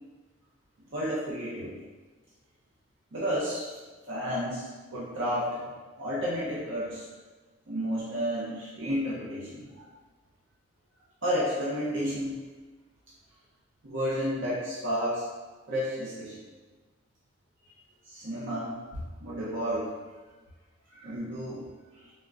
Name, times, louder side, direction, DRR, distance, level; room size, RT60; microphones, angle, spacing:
voice 1, 0.9-1.7 3.1-3.8 4.1-5.7 6.0-7.0 7.7-9.9 11.2-12.3 13.8-15.3 15.7-16.4 18.0-19.9 20.9-21.6 21.9-22.1, equal, 75° right, -8 dB, 0.6 m, -31 dB
3.6 x 2.0 x 2.4 m, 1.3 s
head